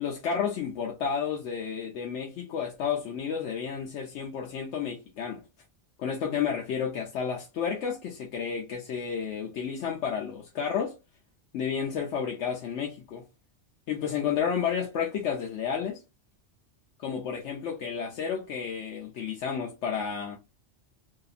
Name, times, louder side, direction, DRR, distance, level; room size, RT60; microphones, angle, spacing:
voice 1, 0.0-5.4 6.0-11.0 11.5-13.2 13.9-16.0 17.0-20.4, left 7 dB, 80° left, 0.9 m, -31 dB
2.8 x 2.3 x 2.3 m
omnidirectional pair, 1.2 m